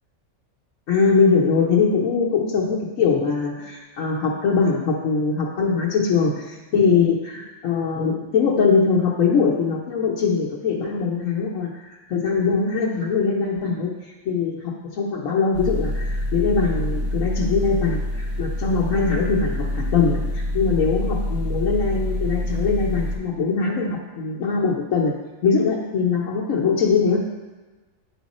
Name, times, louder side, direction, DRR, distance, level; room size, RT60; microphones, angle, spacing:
voice 1, 0.9-25.2 25.4-27.3, left 5 dB, 90° left, -5 dB, 1.2 m, -22 dB
sound 1, 15.5-23.2, left 1 dB, 55° right, 1.6 m, -26 dB
9.4 x 4.0 x 4.1 m, 1.2 s
omnidirectional pair, 1.3 m